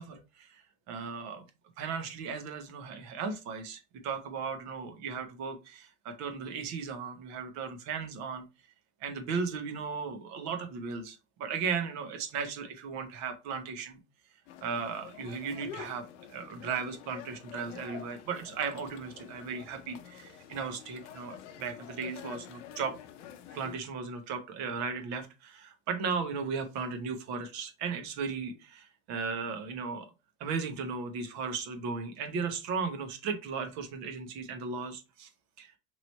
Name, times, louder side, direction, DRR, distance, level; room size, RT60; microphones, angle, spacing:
voice 1, 0.0-1.4 1.8-8.4 9.0-14.0 14.6-23.0 23.5-30.1 30.4-35.3 35.6-35.7, right 5 dB, 50° right, 1.0 m, -36 dB
sound 1, 14.5-23.8, left 9 dB, 85° left, 0.8 m, -48 dB
3.1 x 2.9 x 4.1 m
supercardioid pair, 135°, 35 cm